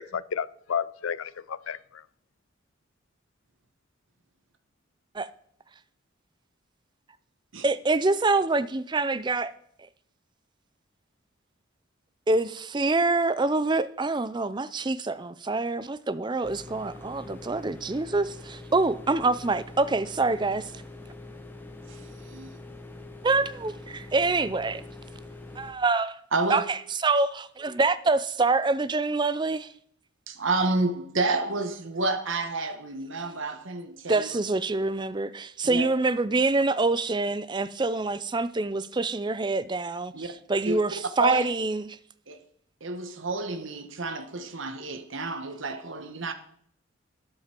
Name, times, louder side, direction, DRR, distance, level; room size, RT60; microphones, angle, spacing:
voice 1, 0.0-2.1, left 7 dB, 75° left, 0.5 m, -32 dB
voice 2, 7.6-9.5 12.3-20.7 23.2-24.8 25.6-26.2 26.5-29.7 34.1-42.0, right 3 dB, 20° right, 0.4 m, -26 dB
sound 1, 16.4-25.7, left 2 dB, 10° left, 1.1 m, -44 dB
voice 3, 26.3-26.6 30.3-34.3 35.6-35.9 40.1-40.3 40.6-40.8 41.2-41.5 42.3-42.4 42.8-46.3, right 3 dB, 65° right, 1.3 m, -29 dB
12.5 x 10.5 x 4.5 m
head